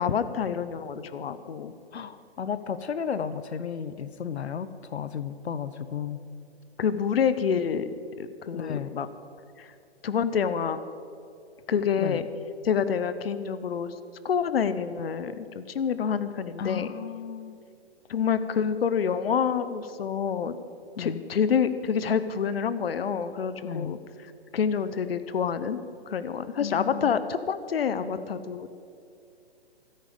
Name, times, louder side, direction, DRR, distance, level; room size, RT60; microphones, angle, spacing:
voice 1, 0.0-1.7 6.8-9.1 9.6-9.7 10.0-10.8 11.7-12.3 12.6-13.9 14.2-16.9 18.1-20.6 21.0-24.0 24.5-28.7, left 7 dB, 65° left, 12 dB, 0.9 m, -27 dB
voice 2, 1.9-6.2 8.5-8.9 12.0-12.2 16.6-17.6 21.0-21.2 23.6-24.0 26.6-27.3, left 7 dB, 90° left, 13 dB, 0.9 m, -34 dB
15.5 x 13.5 x 5.2 m, 2.6 s
hypercardioid pair, 170°, 32 cm